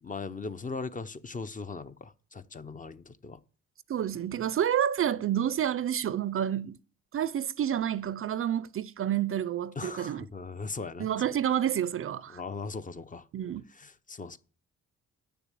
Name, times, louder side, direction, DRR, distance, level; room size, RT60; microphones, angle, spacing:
voice 1, 0.0-3.4 9.8-11.1 12.3-13.3 13.7-14.4, left 4 dB, 25° left, 0.8 m, -39 dB
voice 2, 3.9-6.8 7.1-10.2 11.0-12.4 13.3-13.6, right 10 dB, 45° right, 0.5 m, -29 dB
9.3 x 6.9 x 7.5 m
cardioid pair, 90°, 30 cm